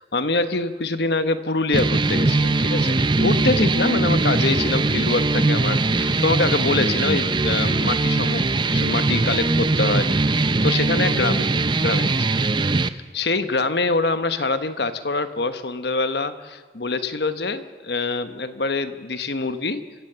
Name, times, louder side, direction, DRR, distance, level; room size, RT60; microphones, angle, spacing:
voice 1, 0.0-10.1 10.6-11.5 11.8-12.3 12.8-19.8, left 3 dB, 65° left, 10 dB, 1.1 m, -25 dB
sound 1, 1.7-12.9, right 3 dB, 25° right, 0.6 m, -21 dB
26.0 x 16.0 x 6.9 m, 1.4 s
head